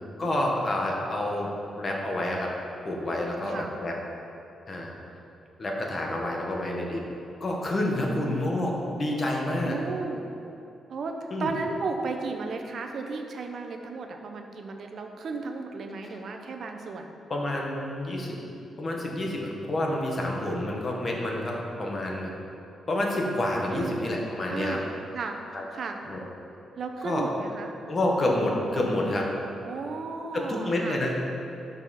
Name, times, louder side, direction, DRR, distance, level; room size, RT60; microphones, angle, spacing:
voice 1, 0.2-1.5 1.8-2.5 2.8-4.0 4.7-4.9 5.6-7.1 7.4-9.8 11.3-11.5 16.1-16.2 17.3-18.4 18.8-22.3 22.9-24.8 25.5-25.6 26.1-26.2 27.0-27.2 27.8-29.3 30.3-31.2, left 1 dB, 30° left, -1 dB, 1.3 m, -28 dB
voice 2, 3.4-3.7 8.1-8.5 9.6-10.2 10.9-17.1 23.7-24.0 24.5-24.9 25.1-25.4 25.7-26.0 26.8-27.7 29.6-31.0, right 4 dB, 50° right, 4 dB, 0.8 m, -34 dB
12.0 x 5.6 x 4.2 m, 2.8 s
wide cardioid pair, 150°, 0 cm